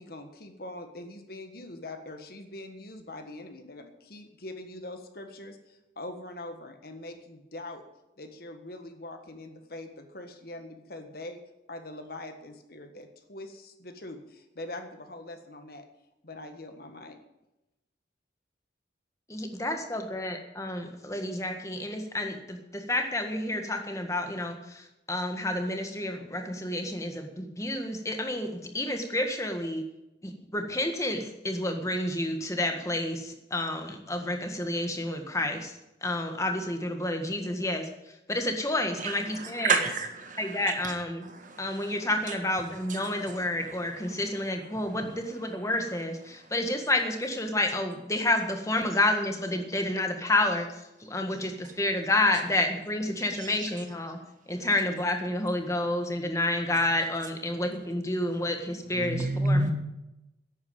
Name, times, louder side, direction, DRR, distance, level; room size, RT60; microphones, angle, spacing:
voice 1, 0.0-7.8 8.2-11.4 11.7-15.9 16.2-17.2, left 2 dB, 50° left, 1.6 m, -43 dB
voice 2, 19.3-29.8 30.2-35.7 36.0-37.9 38.3-39.8 40.4-41.3 41.6-54.2 54.5-59.6, left 1 dB, 15° left, 1.6 m, -30 dB
voice 3, 39.0-40.9 41.2-42.0 42.3-42.4 42.9-43.4 43.6-44.2 44.7-45.0 53.2-53.7 54.5-54.7 58.9-59.7, right 3 dB, 45° right, 1.6 m, -31 dB
11.0 x 8.8 x 8.8 m
head